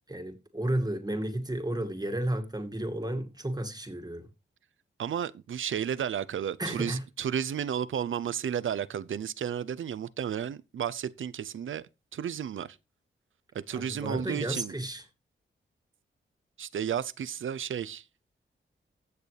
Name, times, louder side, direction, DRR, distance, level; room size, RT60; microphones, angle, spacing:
voice 1, 0.0-4.3 6.6-7.0 13.7-15.0, right 1 dB, 20° right, 2.3 m, -32 dB
voice 2, 5.0-12.8 13.5-14.7 16.6-18.0, right 8 dB, 70° right, 0.6 m, -33 dB
15.5 x 6.7 x 3.3 m
cardioid pair, 65°, 21 cm